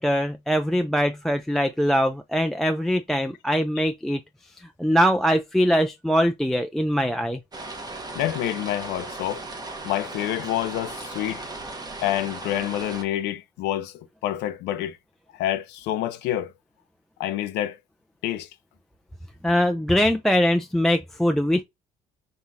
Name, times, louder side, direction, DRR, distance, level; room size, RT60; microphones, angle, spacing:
voice 1, 0.0-4.2 4.8-7.4 19.4-21.6, equal, ahead, 0.3 m, -22 dB
sound 1, 7.5-13.0, right 2 dB, 25° right, 0.9 m, -37 dB
voice 2, 8.1-9.4 9.8-11.5 12.0-15.0 15.3-16.5 17.2-17.8 18.2-18.5, left 13 dB, 85° left, 0.7 m, -28 dB
5.5 x 3.0 x 2.5 m
cardioid pair, 110°, 17 cm